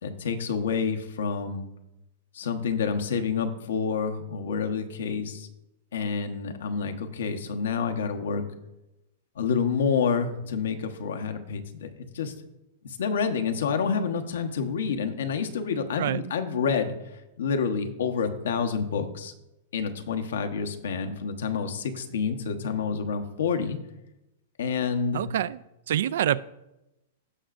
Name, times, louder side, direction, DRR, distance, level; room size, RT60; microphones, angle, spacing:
voice 1, 0.0-1.7 2.3-5.5 5.9-8.4 9.4-12.3 12.8-16.9 17.4-19.3 19.7-23.8 24.6-25.2, left 6 dB, 85° left, 6 dB, 1.0 m, -28 dB
voice 2, 25.1-25.6 25.9-26.4, right 11 dB, 70° right, 18 dB, 0.3 m, -26 dB
16.5 x 5.8 x 2.5 m, 0.92 s
supercardioid pair, 155°, 0 cm